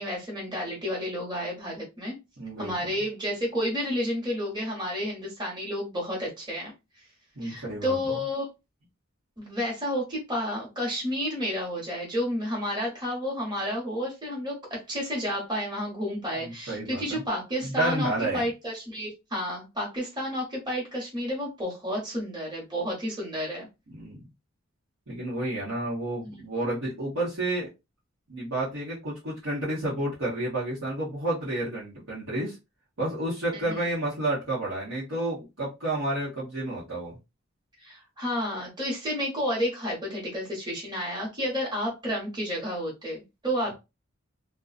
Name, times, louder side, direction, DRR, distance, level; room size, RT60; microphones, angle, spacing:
voice 1, 0.0-2.1 2.6-6.7 7.4-8.5 9.4-23.7 26.2-26.4 33.5-33.6 37.8-43.7, equal, 20° right, -4 dB, 1.1 m, -31 dB
voice 2, 2.4-2.7 7.4-8.0 16.4-17.2 17.6-18.4 23.9-24.2 25.1-27.7 28.3-32.5 33.0-37.2, right 1 dB, 85° right, -8 dB, 1.1 m, -30 dB
2.6 x 2.3 x 2.4 m, 0.25 s
head